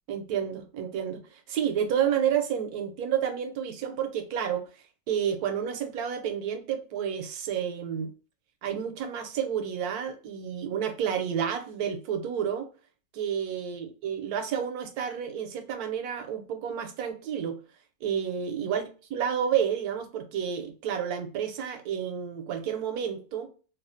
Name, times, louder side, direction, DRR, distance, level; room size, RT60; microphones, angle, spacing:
voice 1, 0.1-4.6 5.1-8.1 8.6-12.7 13.1-17.6 18.0-18.8 19.1-23.5, right 8 dB, 85° right, 6 dB, 1.1 m, -30 dB
2.9 x 2.0 x 2.5 m, 0.37 s
omnidirectional pair, 1.6 m